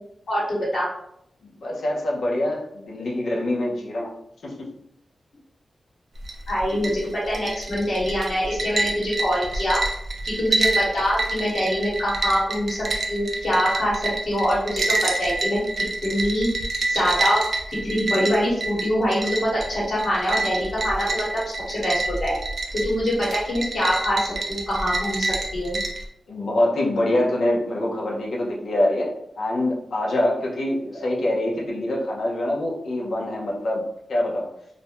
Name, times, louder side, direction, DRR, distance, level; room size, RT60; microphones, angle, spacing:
voice 1, 0.3-0.9 6.5-9.8 10.2-16.5 16.9-17.4 17.7-21.2 21.7-22.3 22.7-25.8, equal, 70° left, -7 dB, 1.3 m, -24 dB
voice 2, 1.6-4.1 4.4-4.7 26.3-29.1 29.4-33.8 34.1-34.5, left 1 dB, 90° left, -3 dB, 0.6 m, -24 dB
sound 1, 6.2-26.1, right 2 dB, 55° right, 0.4 m, -28 dB
2.5 x 2.1 x 2.9 m, 0.74 s
wide cardioid pair, 115°, 0 cm